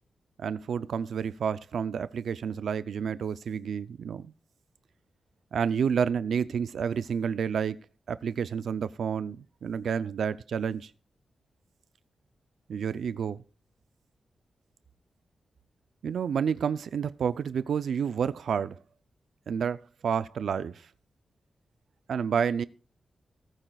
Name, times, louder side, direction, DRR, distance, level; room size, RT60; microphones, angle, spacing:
voice 1, 0.4-4.3 5.5-7.8 8.1-10.9 12.7-13.4 16.0-18.8 19.5-20.9 22.1-22.6, right 7 dB, 80° right, 0.4 m, -30 dB
19.0 x 9.0 x 2.3 m
wide cardioid pair, 175°, 0 cm